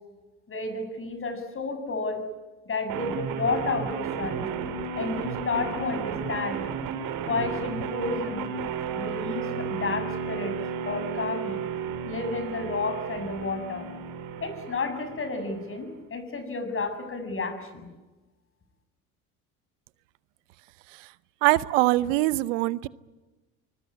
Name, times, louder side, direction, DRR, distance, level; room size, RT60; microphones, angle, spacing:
voice 1, 0.5-2.3 2.7-4.5 5.0-6.6 7.2-8.5 8.9-11.6 12.0-13.9 14.4-17.9, left 3 dB, 35° left, 6.8 m, -31 dB
sound 1, 2.9-15.9, right 6 dB, 60° right, 3.6 m, -33 dB
voice 2, 21.4-22.9, right 18 dB, 80° right, 0.9 m, -22 dB
25.5 x 21.0 x 9.6 m
hypercardioid pair, 75°, 37 cm